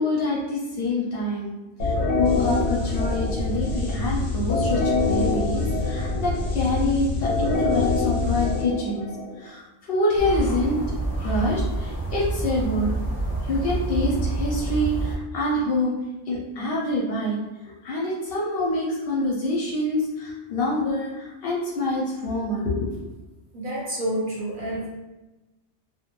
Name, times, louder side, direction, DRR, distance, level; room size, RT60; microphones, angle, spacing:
voice 1, 0.0-1.5 1.8-9.1 9.4-10.8 11.2-12.9 13.4-15.9 16.3-17.4 17.6-22.9, left 1 dB, 65° left, -4 dB, 0.7 m, -26 dB
sound 1, 1.8-9.4, left 3 dB, 85° left, 1.0 m, -24 dB
sound 2, 10.2-15.2, right 2 dB, 15° right, 0.9 m, -27 dB
voice 2, 23.5-24.9, right 1 dB, 50° right, -5 dB, 0.8 m, -28 dB
2.2 x 2.2 x 2.9 m, 1.1 s
omnidirectional pair, 1.2 m